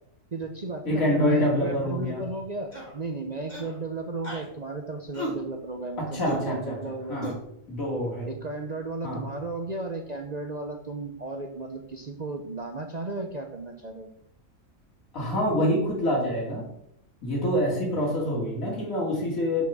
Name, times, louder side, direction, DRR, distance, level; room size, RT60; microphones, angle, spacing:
voice 1, 0.3-7.3 8.3-14.1, right 3 dB, 35° right, 3 dB, 0.8 m, -34 dB
voice 2, 0.8-2.2 6.0-6.8 7.1-7.3 7.7-8.3 9.0-9.3 15.1-16.7 17.2-19.6, left 1 dB, 90° left, -4 dB, 3.0 m, -26 dB
sound 1, 2.7-3.0 3.5-3.8 4.2-4.5 5.1-5.4 6.2-6.4 7.2-7.4, right 1 dB, 30° left, 2.8 m, -34 dB
6.6 x 5.8 x 7.3 m, 0.75 s
omnidirectional pair, 1.4 m